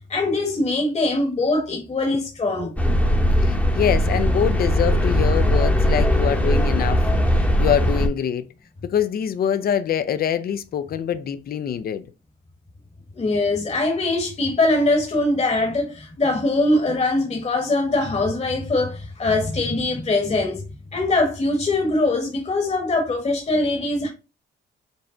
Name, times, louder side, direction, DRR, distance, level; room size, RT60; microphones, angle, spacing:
voice 1, 0.1-2.7 13.1-20.6 20.9-24.1, left 2 dB, 35° left, 1.2 m, -22 dB
sound 1, 2.8-8.1, equal, 5° left, 0.9 m, -19 dB
voice 2, 3.4-7.0 7.6-8.4 8.8-12.0, left 9 dB, 50° left, 0.5 m, -24 dB
5.3 x 2.1 x 3.7 m
cardioid pair, 90°, 20 cm